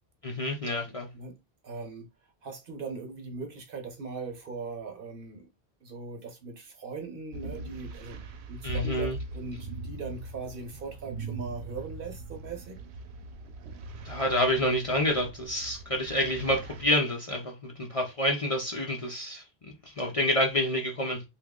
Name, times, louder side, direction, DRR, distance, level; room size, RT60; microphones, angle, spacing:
voice 1, 0.2-1.1 8.6-9.2 14.0-21.2, left 1 dB, 40° left, 0.6 m, -28 dB
voice 2, 1.6-2.1 2.4-5.5 5.8-12.8, right 4 dB, 60° right, 1.0 m, -40 dB
sound 1, 7.3-16.9, right 3 dB, 90° right, 0.9 m, -41 dB
2.9 x 2.3 x 3.6 m
omnidirectional pair, 1.1 m